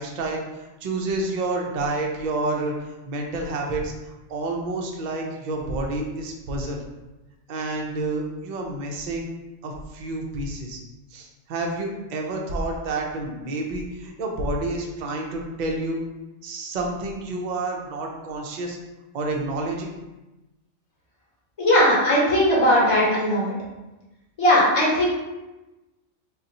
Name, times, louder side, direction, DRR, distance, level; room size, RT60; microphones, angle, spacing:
voice 1, 0.0-3.9 4.3-6.8 7.5-9.3 9.6-10.8 11.1-16.0 16.4-18.8 19.1-19.9, right 2 dB, 55° right, 1 dB, 0.5 m, -29 dB
voice 2, 21.6-23.5 24.4-25.1, equal, 30° left, -5 dB, 0.9 m, -18 dB
2.6 x 2.3 x 4.0 m, 1.0 s
omnidirectional pair, 1.2 m